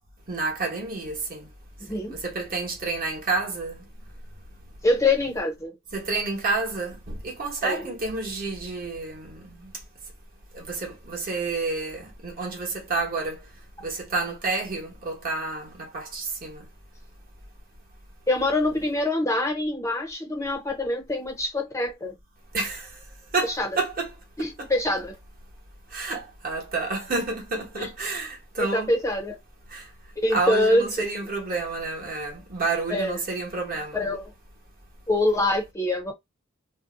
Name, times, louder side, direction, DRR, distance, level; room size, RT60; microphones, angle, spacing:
voice 1, 0.3-1.5 1.9-3.9 5.9-9.7 10.5-13.4 13.8-16.6 22.5-22.9 23.3-24.7 25.9-28.9 29.7-29.9 30.3-34.1, right 3 dB, 45° right, 1.0 m, -30 dB
voice 2, 1.9-2.2 4.8-5.8 7.6-7.8 18.3-22.1 23.6-23.7 24.4-25.2 27.8-27.9 28.7-29.4 30.2-30.9 32.9-33.2 33.9-34.2 35.1-36.1, left 2 dB, 15° left, 0.6 m, -24 dB
2.6 x 2.0 x 3.6 m
head